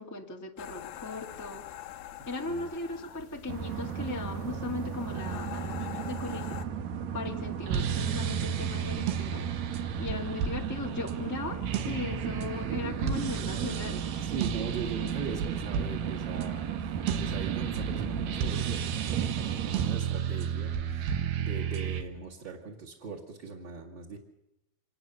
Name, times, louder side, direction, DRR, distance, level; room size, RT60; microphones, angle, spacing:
voice 1, 0.0-1.6 2.3-6.6 7.1-9.4 10.0-14.3, left 3 dB, 20° left, 1 dB, 0.5 m, -38 dB
sound 1, 0.6-6.7, left 12 dB, 80° left, 2.9 m, -44 dB
sound 2, 3.5-20.0, right 8 dB, 60° right, 2.0 m, -35 dB
sound 3, 7.7-22.0, right 7 dB, 85° right, 3.3 m, -33 dB
voice 2, 14.2-24.2, right 5 dB, 35° right, -4 dB, 2.3 m, -40 dB
26.5 x 20.0 x 6.9 m, 0.93 s
omnidirectional pair, 4.4 m